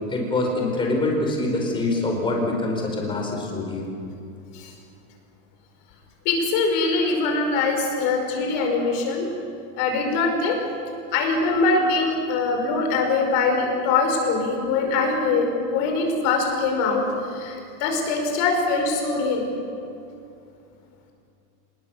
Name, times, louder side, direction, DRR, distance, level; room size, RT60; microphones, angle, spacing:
voice 1, 0.1-3.9, left 2 dB, 10° left, 0 dB, 4.6 m, -25 dB
voice 2, 6.3-9.3 9.8-10.6 11.1-17.1 17.3-19.5, left 3 dB, 35° left, 2 dB, 5.5 m, -23 dB
26.0 x 21.0 x 7.1 m, 2.6 s
supercardioid pair, 160°, 49 cm